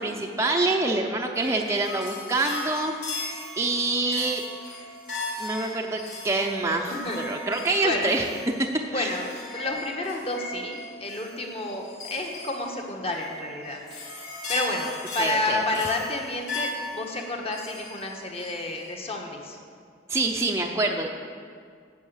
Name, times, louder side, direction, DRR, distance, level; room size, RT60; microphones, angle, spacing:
voice 1, 0.0-4.4 5.4-8.3 8.6-9.1 15.2-15.8 20.1-21.1, right 2 dB, 15° right, 1 dB, 0.6 m, -26 dB
sound 1, 1.4-18.9, left 2 dB, 75° left, 3.5 m, -38 dB
voice 2, 7.8-8.1 8.9-13.8 14.5-19.6, left 2 dB, 35° left, 1 dB, 1.4 m, -30 dB
10.0 x 7.0 x 8.1 m, 2.1 s
head